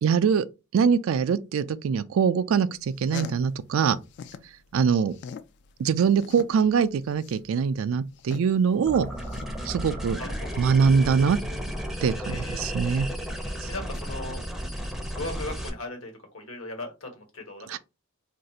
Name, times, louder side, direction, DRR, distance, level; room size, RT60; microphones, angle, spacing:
voice 1, 0.0-0.5 0.7-4.0 4.7-5.2 5.8-9.1 9.7-10.2 10.6-11.4 12.0-13.1 13.6-13.7 17.7-17.8, right 6 dB, 70° right, 0.3 m, -23 dB
bunny lick feet, 2.8-4.5 4.9-9.9, left 6 dB, 55° left, 0.3 m, -42 dB
sound 1, 8.9-15.7, equal, ahead, 0.5 m, -33 dB
voice 2, 10.2-10.6 12.3-12.7 13.7-14.4 15.1-17.8, left 2 dB, 75° left, 1.3 m, -38 dB
2.6 x 2.4 x 3.9 m
head